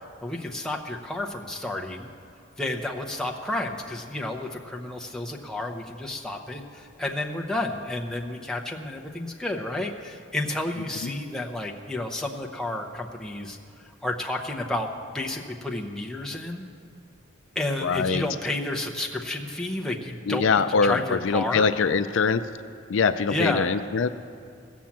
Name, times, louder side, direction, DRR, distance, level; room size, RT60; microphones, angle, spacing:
voice 1, 0.2-2.1 2.6-16.6 17.5-21.7 23.3-23.8, left 1 dB, 5° left, 0 dB, 0.8 m, -31 dB
voice 2, 17.8-18.2 20.3-22.4 22.9-24.1, left 5 dB, 65° left, 12 dB, 0.4 m, -23 dB
16.0 x 7.3 x 7.4 m, 2.3 s
head